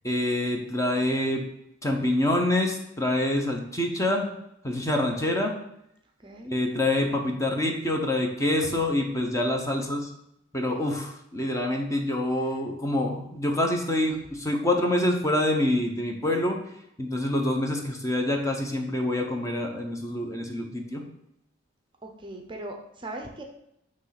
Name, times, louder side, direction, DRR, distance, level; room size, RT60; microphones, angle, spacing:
voice 1, 0.0-1.5 1.8-4.3 4.6-5.5 6.5-10.1 10.5-16.6 17.0-21.0, left 1 dB, 15° left, 2 dB, 0.7 m, -26 dB
voice 2, 6.2-6.5 12.4-12.6 22.0-23.4, right 1 dB, 25° right, 3 dB, 0.6 m, -39 dB
6.0 x 3.2 x 5.8 m, 0.77 s
head